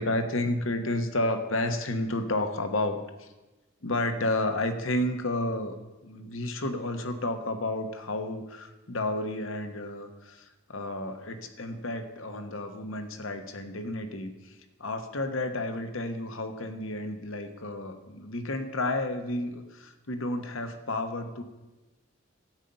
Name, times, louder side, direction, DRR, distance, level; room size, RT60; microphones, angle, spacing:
voice 1, 0.0-3.3 3.8-5.8 6.0-21.4, left 1 dB, 80° left, 7 dB, 1.3 m, -31 dB
12.5 x 5.5 x 9.0 m, 1.1 s
head